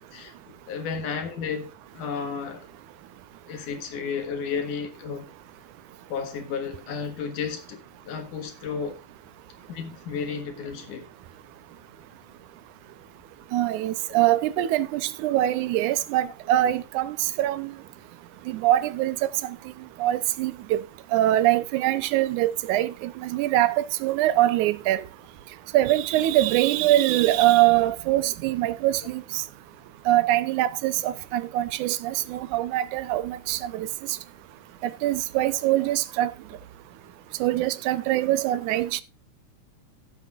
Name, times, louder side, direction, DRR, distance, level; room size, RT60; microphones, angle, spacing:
voice 1, 0.7-2.7 3.5-5.3 6.1-9.0 9.7-11.1 14.6-14.7, left 6 dB, 80° left, 3.2 m, -33 dB
voice 2, 13.5-17.7 18.5-19.2 19.4-19.6 20.0-20.8 21.1-25.0 25.7-29.4 30.1-33.9 35.0-36.3 37.4-39.0, right 14 dB, 80° right, 2.1 m, -23 dB
17.0 x 7.8 x 2.4 m
omnidirectional pair, 3.6 m